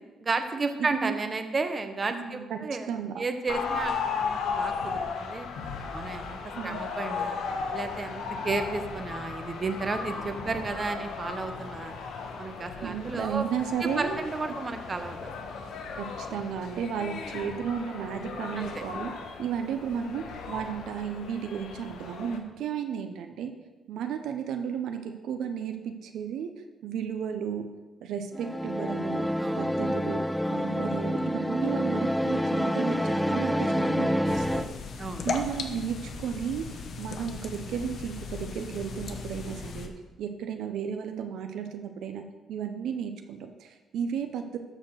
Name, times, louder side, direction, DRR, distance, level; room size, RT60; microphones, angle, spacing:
voice 1, 0.2-2.9 3.2-5.5 5.9-7.4 7.7-11.9 12.4-13.5 13.8-15.3 18.6-18.8 29.4-29.7 30.4-30.6 35.0-35.3, right 3 dB, 35° right, 7 dB, 1.0 m, -33 dB
voice 2, 2.1-2.6 2.9-3.1 6.6-6.9 12.8-14.2 16.0-19.1 19.4-23.5 23.9-26.5 26.8-27.6 28.0-29.3 29.6-30.2 30.5-34.7 35.2-36.7 37.0-39.9 40.2-44.6, right 8 dB, 80° right, 6 dB, 0.7 m, -33 dB
sound 1, 3.5-22.4, left 5 dB, 80° left, 1.2 m, -36 dB
sound 2, 28.3-34.7, equal, ahead, 0.3 m, -27 dB
sound 3, 34.2-39.9, left 4 dB, 60° left, 1.1 m, -37 dB
12.5 x 4.3 x 6.4 m, 1.2 s
cardioid pair, 90°, 0 cm